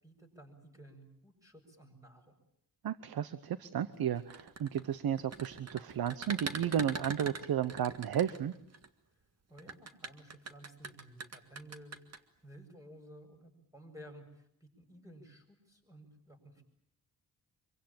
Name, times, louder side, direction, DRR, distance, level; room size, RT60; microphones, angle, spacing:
voice 1, 0.0-2.3 9.5-12.0 12.4-16.6, right 1 dB, 10° right, 3 dB, 7.8 m, -54 dB
voice 2, 2.8-8.5, right 9 dB, 80° right, 14 dB, 1.0 m, -33 dB
sound 1, 4.2-8.9 9.6-12.2, right 4 dB, 45° right, 2.0 m, -42 dB
26.0 x 24.0 x 8.9 m, 0.72 s
wide cardioid pair, 110°, 36 cm